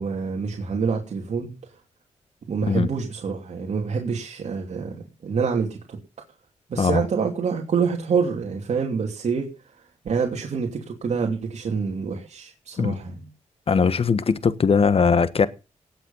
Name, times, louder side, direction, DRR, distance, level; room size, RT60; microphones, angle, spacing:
voice 1, 0.0-1.5 2.5-6.0 6.7-9.5 10.0-13.1, right 5 dB, 65° right, 2.8 m, -26 dB
voice 2, 13.7-15.5, left 5 dB, 50° left, 1.4 m, -20 dB
18.5 x 7.5 x 5.7 m
cardioid pair, 75°, 13 cm